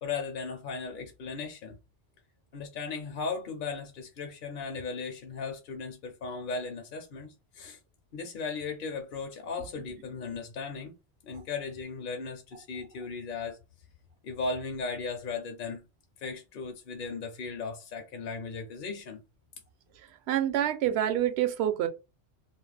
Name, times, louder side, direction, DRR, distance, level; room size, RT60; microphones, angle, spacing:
voice 1, 0.0-1.8 2.5-7.8 8.1-10.9 11.2-13.6 14.2-15.8 16.2-19.2, left 4 dB, 60° left, 0.6 m, -37 dB
voice 2, 20.3-21.9, right 11 dB, 70° right, 0.8 m, -27 dB
2.4 x 2.1 x 3.2 m
omnidirectional pair, 1.2 m